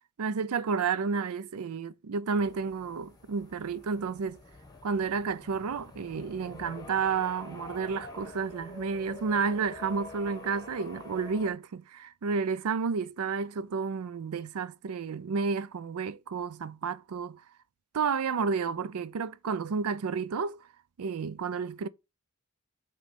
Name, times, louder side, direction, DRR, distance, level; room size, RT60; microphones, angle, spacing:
voice 1, 0.2-4.4 4.8-17.4 17.9-20.6 21.0-21.9, right 5 dB, 80° right, 0.4 m, -31 dB
sound 1, 2.4-11.5, left 2 dB, 20° left, 1.2 m, -47 dB
7.2 x 3.1 x 5.1 m
head